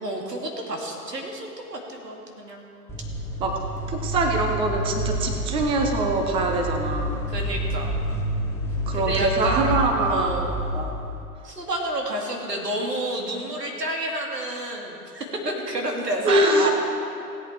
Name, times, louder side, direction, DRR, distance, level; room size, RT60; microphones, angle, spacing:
voice 1, 0.0-2.7 7.3-8.0 8.9-9.7 10.1-10.6 11.4-16.7, right 1 dB, 85° right, 0 dB, 2.4 m, -30 dB
sound 1, 2.9-11.2, equal, 5° left, 1.2 m, -29 dB
voice 2, 3.9-7.2 8.9-10.4 10.7-10.9 16.2-16.7, right 2 dB, 10° right, 3 dB, 0.7 m, -23 dB
17.5 x 8.3 x 4.6 m, 2.6 s
figure-of-eight pair, 120°, 47 cm